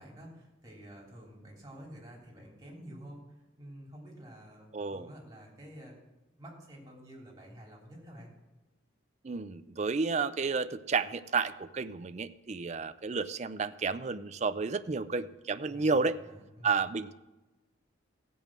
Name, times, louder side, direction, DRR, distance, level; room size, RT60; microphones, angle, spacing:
voice 1, 0.0-6.0 6.4-8.3 15.7-16.8, equal, 15° right, -3 dB, 3.3 m, -50 dB
voice 2, 4.7-5.1 9.2-16.2 16.6-17.1, right 4 dB, 35° right, 11 dB, 0.4 m, -31 dB
16.0 x 5.5 x 7.4 m, 1.1 s
head